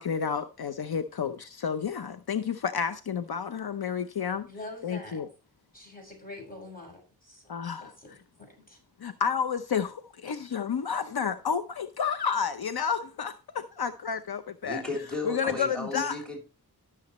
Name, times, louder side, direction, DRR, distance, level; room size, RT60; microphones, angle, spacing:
voice 1, 0.0-4.5 4.8-5.3 7.5-7.9 9.0-14.8 15.2-16.2, left 6 dB, 70° left, 0.7 m, -30 dB
voice 2, 4.5-5.2 5.7-7.5 7.8-8.8 10.3-10.4, left 2 dB, 20° left, 6.6 m, -45 dB
voice 3, 14.6-16.4, left 2 dB, ahead, 3.4 m, -34 dB
13.5 x 7.1 x 3.1 m
wide cardioid pair, 75°, 39 cm